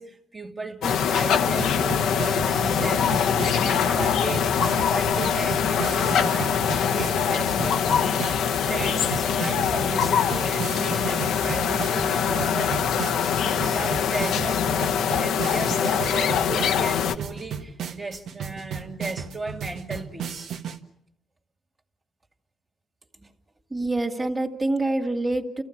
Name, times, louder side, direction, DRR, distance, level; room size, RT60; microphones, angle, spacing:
voice 1, 0.0-3.2 3.6-4.6 4.9-13.0 13.6-20.5, right 3 dB, 35° right, 2.3 m, -36 dB
sound 1, 0.8-17.1, left 7 dB, 80° left, 1.0 m, -23 dB
sound 2, 1.6-20.8, right 7 dB, 75° right, 1.5 m, -35 dB
voice 2, 23.7-25.6, right 2 dB, 15° right, 2.2 m, -26 dB
29.5 x 15.0 x 8.7 m
cardioid pair, 90°, 0 cm